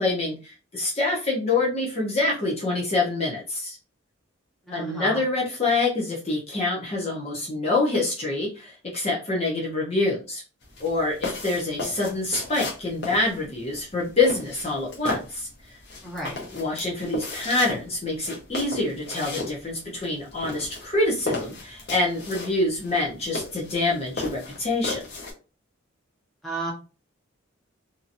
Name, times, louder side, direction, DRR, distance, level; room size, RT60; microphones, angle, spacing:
voice 1, 0.0-3.8 4.7-10.4 10.8-15.8 16.5-25.0, left 2 dB, 30° left, -3 dB, 0.8 m, -26 dB
voice 2, 4.6-5.2 16.0-16.4 26.4-26.7, right 1 dB, ahead, -5 dB, 1.0 m, -32 dB
sound 1, 10.6-25.3, left 3 dB, 55° left, 0.9 m, -35 dB
2.8 x 2.7 x 2.5 m, 0.33 s
head